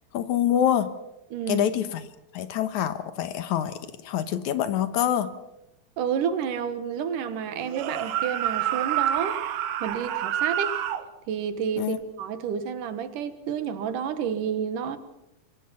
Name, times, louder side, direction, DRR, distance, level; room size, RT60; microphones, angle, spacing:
voice 1, 0.1-0.9 1.5-2.0 2.3-3.8 4.0-5.3 11.8-12.0, left 10 dB, 75° left, 11 dB, 2.6 m, -25 dB
voice 2, 1.3-1.7 6.0-9.4 9.8-10.8 11.3-15.0, right 7 dB, 90° right, 11 dB, 3.0 m, -30 dB
sound 1, 7.6-11.1, right 11 dB, 70° right, 2.3 m, -28 dB
26.0 x 23.0 x 5.8 m, 0.89 s
omnidirectional pair, 3.6 m